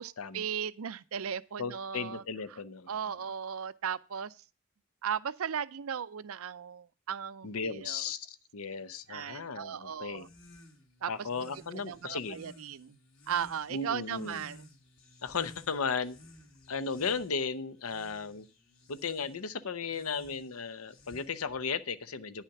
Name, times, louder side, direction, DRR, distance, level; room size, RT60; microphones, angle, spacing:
voice 1, 0.0-2.2 2.5-2.6 2.9-4.4 5.0-8.0 9.1-10.3 11.0-13.0 13.3-14.7, right 8 dB, 75° right, 0.5 m, -37 dB
voice 2, 1.6-2.9 7.4-10.3 11.1-12.4 13.7-14.5 15.2-16.2 16.7-18.5 18.9-22.4, left 5 dB, 85° left, 0.7 m, -35 dB
sound 1, 10.1-21.6, left 1 dB, 65° left, 2.6 m, -56 dB
10.0 x 5.7 x 5.8 m
head